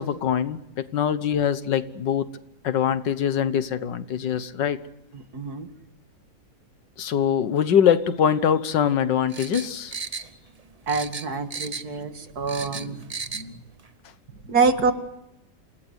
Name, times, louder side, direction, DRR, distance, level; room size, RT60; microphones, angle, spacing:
voice 1, 0.0-2.3 2.6-4.8 7.0-9.9 12.8-12.9 13.3-13.5, left 8 dB, 85° left, 13 dB, 1.9 m, -23 dB
voice 2, 5.1-5.7 10.9-13.1 14.4-14.9, right 4 dB, 60° right, 8 dB, 2.3 m, -25 dB
sound 1, 9.3-10.6 10.9-12.0 12.3-13.5 13.8-13.9, right 4 dB, 30° right, 0.8 m, -35 dB
28.0 x 19.5 x 8.1 m, 0.85 s
omnidirectional pair, 1.9 m